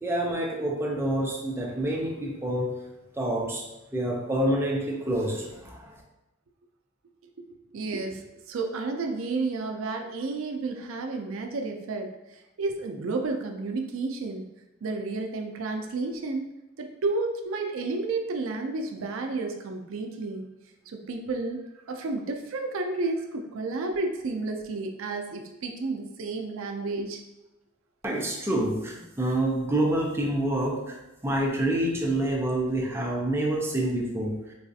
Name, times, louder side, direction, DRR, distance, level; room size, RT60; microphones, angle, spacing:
voice 1, 0.0-2.8 3.1-3.6 3.9-6.0 28.0-31.0 31.2-34.5, right 1 dB, 10° right, -3 dB, 0.5 m, -27 dB
voice 2, 7.7-8.2 8.5-12.1 12.6-14.5 14.8-16.5 16.8-20.5 20.9-27.2, right 3 dB, 75° right, 4 dB, 0.4 m, -31 dB
4.0 x 2.4 x 2.6 m, 0.98 s
head